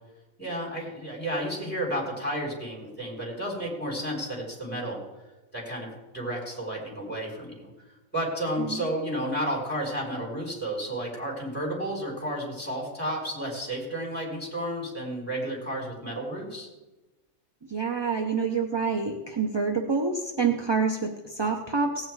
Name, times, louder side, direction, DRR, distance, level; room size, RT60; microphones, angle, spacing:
voice 1, 0.4-5.0 5.5-5.9 6.1-7.7 8.1-16.7, right 1 dB, 5° left, -3 dB, 4.6 m, -32 dB
voice 2, 17.7-22.1, right 5 dB, 30° right, 3 dB, 0.5 m, -27 dB
17.5 x 9.0 x 4.7 m, 1.1 s
omnidirectional pair, 1.4 m